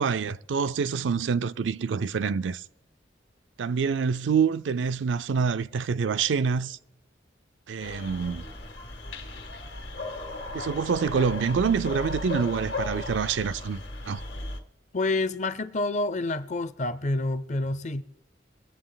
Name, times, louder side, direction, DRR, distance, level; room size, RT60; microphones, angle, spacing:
voice 1, 0.0-2.6 3.6-6.8 7.7-8.4 10.5-14.2, right 6 dB, 80° right, 0.4 m, -26 dB
sound 1, 7.8-14.6, left 2 dB, 70° left, 1.5 m, -36 dB
voice 2, 14.9-18.0, left 2 dB, 40° left, 0.6 m, -28 dB
22.5 x 8.0 x 3.9 m
head